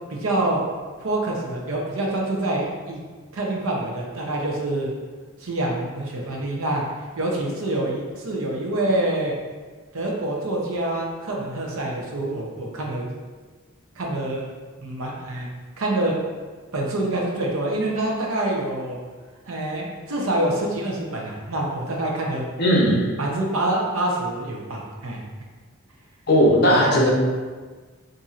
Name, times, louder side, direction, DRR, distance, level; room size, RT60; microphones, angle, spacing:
voice 1, 0.1-0.6 1.0-3.0 3.3-4.9 5.4-6.8 7.1-9.3 9.9-13.1 14.0-14.4 14.8-15.5 15.8-16.1 16.7-19.0 19.5-22.4 23.2-25.2, right 1 dB, 70° right, -1 dB, 0.6 m, -26 dB
voice 2, 22.6-23.1 26.3-27.1, equal, 45° left, -3 dB, 0.7 m, -17 dB
4.1 x 2.6 x 2.4 m, 1.4 s
head